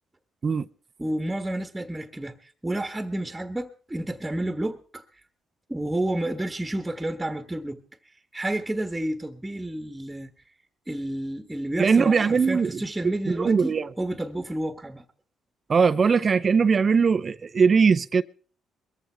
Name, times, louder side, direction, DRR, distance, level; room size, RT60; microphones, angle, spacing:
voice 1, 1.0-5.0 5.7-7.8 8.3-10.3 10.9-15.0, right 1 dB, 10° right, 1.4 m, -30 dB
voice 2, 11.8-12.8 13.3-13.9 15.7-18.2, right 5 dB, 40° right, 0.6 m, -20 dB
21.5 x 14.0 x 3.4 m
supercardioid pair, 75°, 0 cm